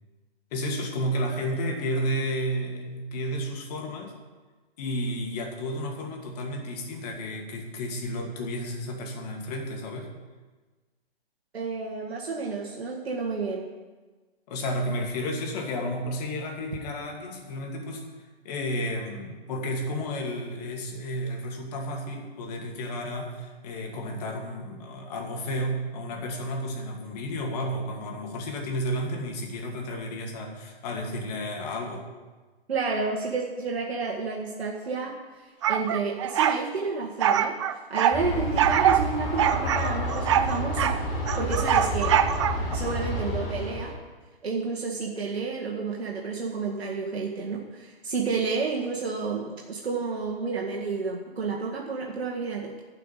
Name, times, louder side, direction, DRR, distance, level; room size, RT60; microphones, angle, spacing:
voice 1, 0.5-4.1 4.8-10.1 14.5-18.0 18.4-32.0, equal, 40° left, 1 dB, 2.6 m, -32 dB
voice 2, 11.5-13.7 32.7-41.0 41.3-42.1 42.7-43.9 44.4-52.8, right 4 dB, 80° right, -2 dB, 1.9 m, -31 dB
sound 1, 35.6-36.6 37.2-38.2 38.6-39.0 39.4-41.0 41.3-42.8, right 10 dB, 30° right, 0.4 m, -23 dB
Aircraft, 38.1-43.9, left 1 dB, 20° left, 3.5 m, -30 dB
12.0 x 5.9 x 9.0 m, 1.3 s
hypercardioid pair, 140°, 31 cm